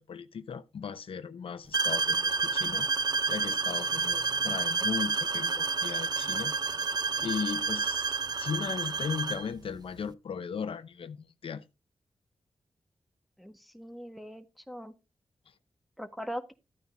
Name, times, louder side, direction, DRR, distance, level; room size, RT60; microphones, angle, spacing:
voice 1, 0.0-2.9 3.3-6.5 7.2-11.6, left 6 dB, 70° left, 0.7 m, -37 dB
sound 1, 1.7-9.5, right 4 dB, 45° right, 0.5 m, -29 dB
voice 2, 13.4-14.9 16.0-16.5, equal, ahead, 1.5 m, -41 dB
13.5 x 9.2 x 2.7 m
wide cardioid pair, 85°, 10 cm